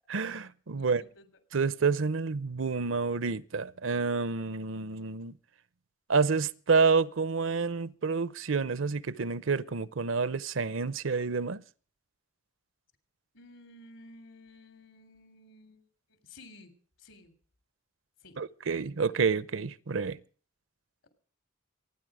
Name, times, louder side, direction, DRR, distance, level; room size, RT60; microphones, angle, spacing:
voice 1, 0.1-1.0 1.5-5.3 6.1-11.6 18.4-20.2, right 4 dB, 80° right, 0.7 m, -29 dB
voice 2, 0.8-1.3 13.3-15.8 16.1-16.7 17.0-17.3 18.2-18.4, left 2 dB, 80° left, 3.3 m, -53 dB
26.5 x 9.9 x 5.0 m
head